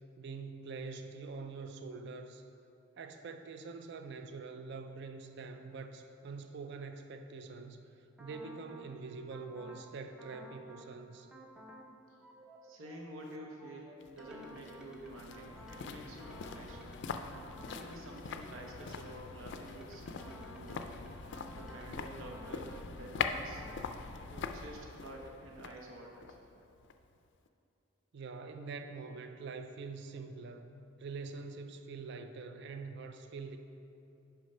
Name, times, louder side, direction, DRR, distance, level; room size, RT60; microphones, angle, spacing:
voice 1, 0.2-2.4 3.0-7.8 8.2-11.3 28.1-30.7 31.0-33.6, right 4 dB, 60° right, 7 dB, 0.4 m, -45 dB
sound 1, 8.2-8.9 9.3-9.9 10.2-10.9 11.3-11.9 12.2-19.3 19.7-22.9 23.3-23.9, equal, 5° right, 0.5 m, -53 dB
voice 2, 12.6-16.9 17.6-21.0 21.5-23.6 24.3-26.4, right 1 dB, 80° right, 0 dB, 0.9 m, -49 dB
sound 2, 14.0-27.2 27.5-27.6, left 5 dB, 60° left, 0.4 m, -43 dB
6.3 x 5.0 x 5.5 m, 2.8 s
head